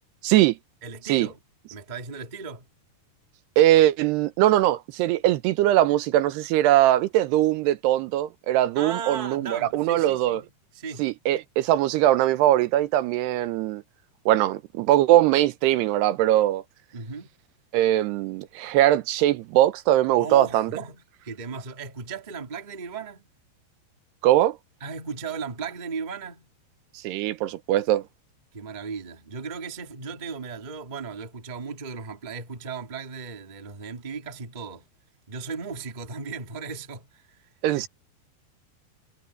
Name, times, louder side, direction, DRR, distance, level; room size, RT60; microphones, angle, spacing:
voice 1, 0.2-0.6 1.0-1.3 3.6-10.4 11.0-13.8 14.3-16.6 17.7-20.7 24.2-24.6 27.0-28.0 37.6-37.9, right 14 dB, 80° right, 3.0 m, -21 dB
voice 2, 0.8-1.4 1.7-2.6 8.7-10.5 10.7-11.1 16.9-17.3 20.2-23.3 24.8-26.5 28.5-34.9 35.3-37.9, right 5 dB, 25° right, 1.0 m, -36 dB
omnidirectional pair, 4.8 m